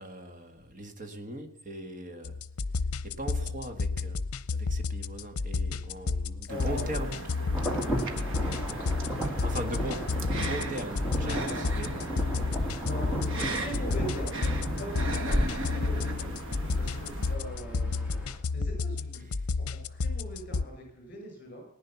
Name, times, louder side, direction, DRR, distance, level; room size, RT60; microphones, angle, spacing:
voice 1, 0.0-2.4 3.0-7.5 9.4-12.1 19.4-19.5, right 1 dB, 35° right, 6 dB, 1.7 m, -39 dB
sound 1, 2.2-20.7, left 4 dB, 85° left, 0.7 m, -32 dB
voice 2, 6.2-7.0 7.4-7.8 8.4-9.5 10.0-10.2 12.8-16.4 16.8-21.7, equal, 40° left, 2 dB, 5.9 m, -43 dB
sound 2, 6.5-17.4, right 2 dB, 60° right, 1.4 m, -38 dB
Insect / Thunder / Rain, 7.5-18.4, equal, 5° right, 2.6 m, -34 dB
18.5 x 10.0 x 7.1 m, 0.75 s
head